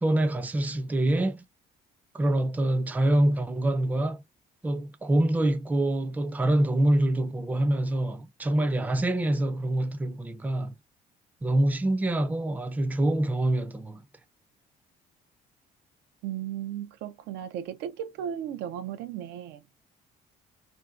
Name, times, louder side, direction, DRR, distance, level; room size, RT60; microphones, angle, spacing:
voice 1, 0.0-1.4 2.1-4.2 4.6-10.7 11.4-14.0, right 1 dB, 10° right, 0.4 m, -25 dB
voice 2, 16.2-19.6, right 10 dB, 90° right, 0.5 m, -35 dB
2.6 x 2.1 x 2.4 m
cardioid pair, 110°, 17 cm